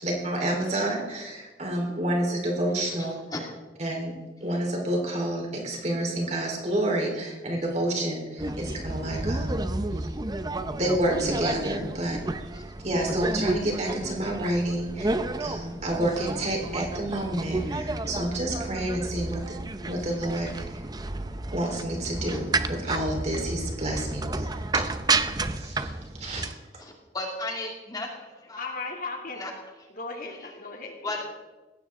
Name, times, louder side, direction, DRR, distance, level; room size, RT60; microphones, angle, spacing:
voice 1, 0.0-3.2 3.8-4.1 4.4-9.7 10.7-12.2 12.8-19.6 19.9-20.8 21.5-24.5 24.7-24.8 25.5-25.9 26.2-26.5, right 1 dB, 40° right, 0 dB, 3.9 m, -29 dB
sound 1, 8.4-26.5, right 2 dB, 25° right, 0.7 m, -31 dB
voice 2, 26.8-28.8 29.3-29.5 30.4-30.5 31.0-31.2, left 2 dB, 20° left, 1 dB, 2.3 m, -35 dB
voice 3, 28.6-29.4 30.0-31.2, left 3 dB, 55° left, 1 dB, 2.7 m, -36 dB
19.5 x 16.5 x 3.7 m, 1.2 s
head